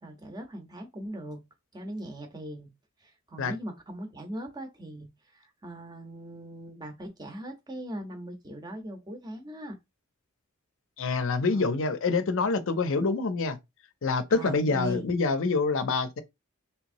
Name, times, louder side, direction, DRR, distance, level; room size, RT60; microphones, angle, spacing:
voice 1, 0.0-1.4 1.7-2.7 3.0-5.1 5.3-9.8 11.4-11.7 14.3-15.1, equal, 20° right, 0.7 m, -40 dB
voice 2, 11.0-13.6 14.0-16.2, left 4 dB, 65° left, 0.5 m, -26 dB
3.4 x 2.9 x 2.6 m
head